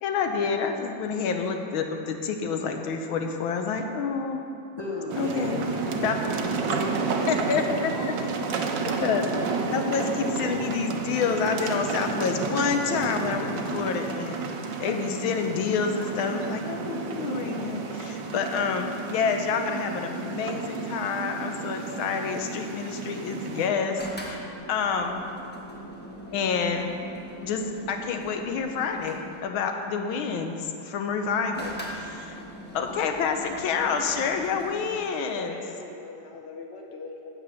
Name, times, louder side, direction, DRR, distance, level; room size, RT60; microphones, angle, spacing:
voice 1, 0.0-4.4 5.1-5.6 6.0-6.2 7.3-8.1 8.9-9.3 9.7-14.4 14.8-25.2 26.3-26.9 27.4-27.6 27.9-32.4 32.7-35.6, left 5 dB, 85° left, 5 dB, 1.6 m, -28 dB
voice 2, 4.8-6.2 6.5-7.5 7.9-8.1, left 1 dB, 15° right, -5 dB, 1.0 m, -37 dB
sound 1, 5.1-23.7, right 4 dB, 65° right, 1.4 m, -31 dB
sound 2, 24.0-29.4 31.5-34.9, equal, 10° left, 0.7 m, -41 dB
voice 3, 35.0-37.3, left 3 dB, 65° left, 1 dB, 0.6 m, -40 dB
8.4 x 7.6 x 6.3 m, 2.6 s
omnidirectional pair, 2.2 m